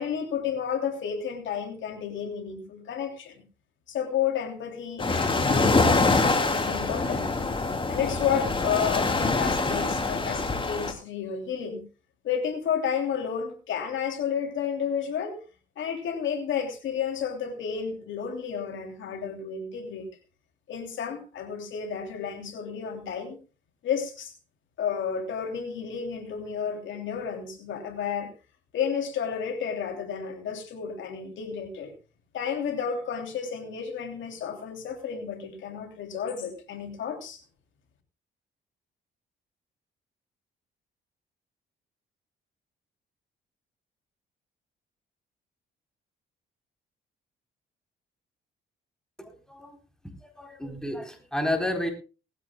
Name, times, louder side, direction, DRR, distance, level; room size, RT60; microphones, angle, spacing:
voice 1, 0.0-3.4 3.9-7.3 7.9-11.8 12.2-15.4 15.8-20.1 20.7-23.4 23.8-24.3 24.8-28.3 28.7-31.9 32.3-37.4, left 7 dB, 75° left, 5 dB, 3.2 m, -31 dB
sound 1, 5.0-10.9, left 3 dB, 25° left, 2.9 m, -25 dB
voice 2, 49.2-49.8 50.0-51.9, left 1 dB, 5° left, 4 dB, 4.1 m, -31 dB
19.0 x 15.0 x 2.3 m, 0.33 s
cardioid pair, 90°, 20 cm